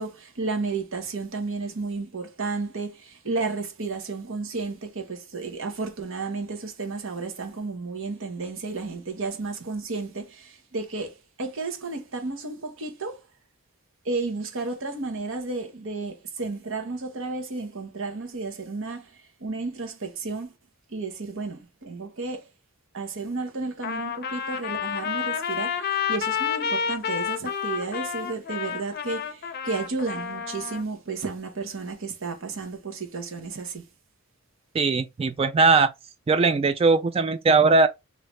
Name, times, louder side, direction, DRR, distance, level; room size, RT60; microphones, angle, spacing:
voice 1, 0.0-13.2 14.0-20.5 20.9-22.5 22.9-33.8, right 3 dB, 65° right, 1.1 m, -32 dB
Trumpet, 23.8-30.8, left 7 dB, 50° left, 0.5 m, -29 dB
voice 2, 34.7-35.9 36.3-37.9, right 4 dB, 25° right, 0.3 m, -20 dB
3.2 x 2.8 x 3.1 m
head